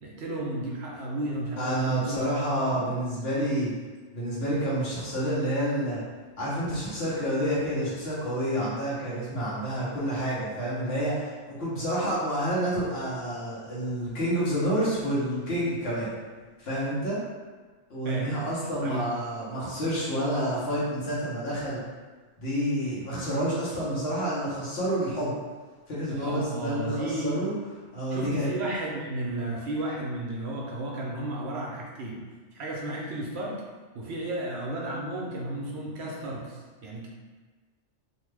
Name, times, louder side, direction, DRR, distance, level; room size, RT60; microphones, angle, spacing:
voice 1, 0.0-2.3 2.7-2.8 18.0-18.3 18.8-19.1 26.1-27.4 28.1-32.2 32.5-33.5 33.9-37.1, right 1 dB, 70° right, -3 dB, 0.8 m, -33 dB
voice 2, 1.6-3.7 4.1-6.0 6.4-11.3 11.6-16.1 16.6-17.2 17.9-21.8 22.4-25.4 25.9-27.5 27.9-28.5, equal, 60° left, -8 dB, 1.1 m, -29 dB
2.8 x 2.2 x 3.2 m, 1.4 s
omnidirectional pair, 1.2 m